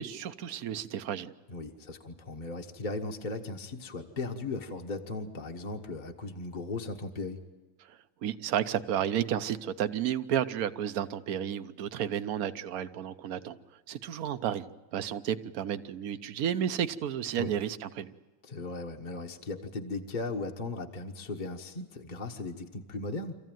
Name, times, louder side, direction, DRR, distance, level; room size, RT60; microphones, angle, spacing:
voice 1, 0.0-1.3 7.9-13.6 13.9-18.1, right 9 dB, 55° right, 11 dB, 1.2 m, -32 dB
voice 2, 1.5-7.4 17.4-17.5 18.4-23.4, left 3 dB, 30° left, 2 dB, 1.2 m, -37 dB
26.0 x 15.0 x 9.2 m, 1.3 s
omnidirectional pair, 2.1 m